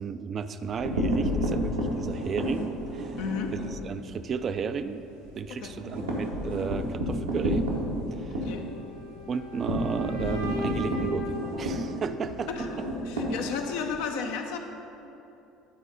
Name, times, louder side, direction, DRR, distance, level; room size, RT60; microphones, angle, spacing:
voice 1, 0.0-3.2 3.8-5.1 5.3-7.7 8.1-8.5 9.3-12.5, right 6 dB, 40° right, 10 dB, 0.4 m, -33 dB
sound 1, 0.6-3.8 4.2-4.4 4.7-4.8 5.1-14.0, equal, 85° right, 1.1 m, -31 dB
voice 2, 3.2-3.5 5.5-5.8 8.3-8.7 12.5-12.8 13.0-14.6, left 5 dB, 65° left, 4 dB, 0.7 m, -33 dB
sound 2, 8.5-12.5, left 2 dB, 85° left, 1.3 m, -39 dB
10.0 x 4.2 x 5.0 m, 2.9 s
figure-of-eight pair, 60°, 0 cm